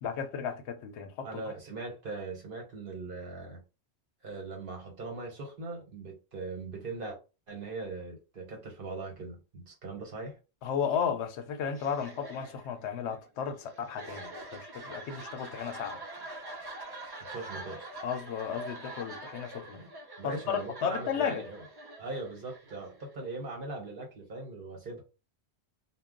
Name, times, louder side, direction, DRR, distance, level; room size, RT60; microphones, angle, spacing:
voice 1, 0.0-1.4 10.6-16.0 18.0-19.8 20.2-21.4, left 7 dB, 85° left, 0.9 m, -34 dB
voice 2, 1.2-3.6 4.2-7.2 7.5-10.4 17.2-17.9 19.7-19.9 20.2-21.6 22.0-25.0, right 3 dB, 55° right, 1.1 m, -40 dB
sound 1, 11.7-23.4, right 1 dB, 35° right, 0.4 m, -45 dB
2.3 x 2.1 x 3.6 m
omnidirectional pair, 1.1 m